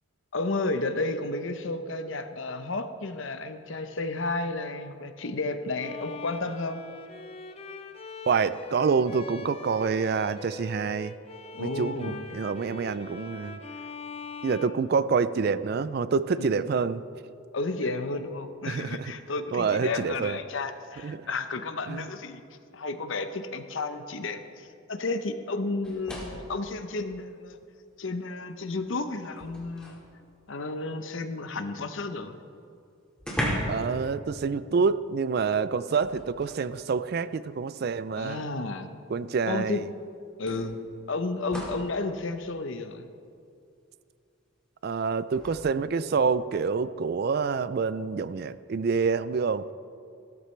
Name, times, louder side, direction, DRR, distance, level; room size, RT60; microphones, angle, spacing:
voice 1, 0.3-6.8 11.5-12.3 16.4-16.7 17.5-22.4 22.7-27.6 28.0-30.0 30.5-32.4 38.2-38.9 39.5-39.8 40.4-40.8 41.1-43.1, left 3 dB, 65° left, 9 dB, 0.8 m, -32 dB
Bowed string instrument, 5.8-15.6, left 3 dB, 30° left, 0.6 m, -42 dB
voice 2, 8.3-11.1 11.6-13.6 14.4-17.0 18.7-19.1 19.5-20.4 21.0-21.3 21.9-22.1 33.7-38.4 39.1-39.9 44.8-49.7, right 5 dB, 50° right, 15 dB, 0.3 m, -27 dB
sound 1, 25.8-26.6 27.9-28.0 28.5-30.1 32.2-32.3 32.5-32.6 33.2-33.9 34.2-34.4 35.9-36.7 37.8-37.9 39.5-39.6 40.5-41.9 45.3-45.6, equal, 5° left, 2.0 m, -36 dB
15.5 x 13.5 x 3.3 m, 2.5 s
head